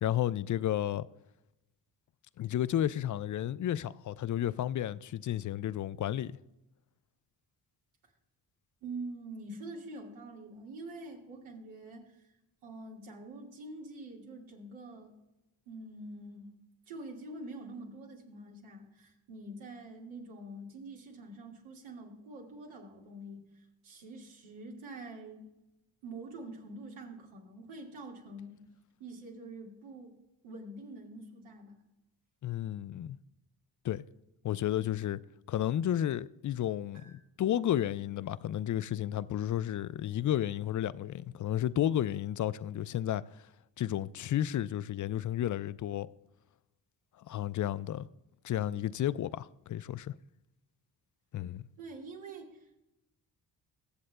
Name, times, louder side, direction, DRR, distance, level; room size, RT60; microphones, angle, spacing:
voice 1, 0.0-1.1 2.4-6.4 32.4-33.2 33.8-34.0 34.4-35.2 35.5-43.2 43.8-46.1 47.2-48.1 48.4-50.2 51.3-51.6, left 11 dB, 40° left, 0.5 m, -32 dB
voice 2, 8.8-12.3 12.6-15.1 15.7-16.6 16.9-23.4 23.8-25.5 26.0-28.6 29.0-30.1 30.4-31.8 36.9-37.2 51.8-52.8, right 2 dB, 85° right, 1.9 m, -46 dB
22.0 x 7.4 x 2.2 m
supercardioid pair, 45°, 47 cm